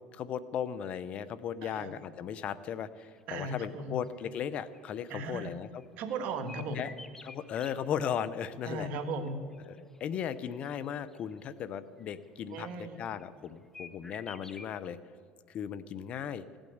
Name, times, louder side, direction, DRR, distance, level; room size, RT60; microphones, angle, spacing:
voice 1, 0.1-5.8 6.7-6.9 7.2-8.9 9.7-15.0 15.5-16.4, left 8 dB, 55° left, 16 dB, 0.8 m, -36 dB
voice 2, 1.6-1.9 3.3-4.0 5.1-5.5 6.0-6.9 8.6-9.4 12.5-13.0, right 3 dB, 65° right, 7 dB, 1.7 m, -37 dB
sound 1, 3.0-3.2 3.6-3.7 4.0-5.2 5.8-7.7 8.5-11.5 12.0-13.5 13.7-14.8, left 3 dB, 15° left, 1.0 m, -51 dB
16.5 x 8.9 x 8.0 m, 2.2 s
supercardioid pair, 85°, 3 cm